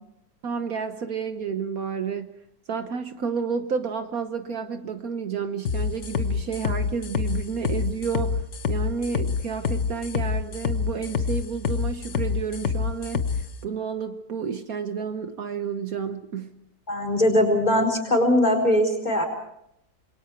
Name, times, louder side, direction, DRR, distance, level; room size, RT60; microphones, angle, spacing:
voice 1, 0.4-2.3 2.7-16.6, right 6 dB, 60° right, 8 dB, 1.5 m, -31 dB
sound 1, 5.7-13.4, left 6 dB, 50° left, 1.3 m, -26 dB
voice 2, 16.9-19.3, left 1 dB, 25° left, 4 dB, 4.6 m, -21 dB
27.5 x 22.5 x 4.6 m, 0.78 s
omnidirectional pair, 1.7 m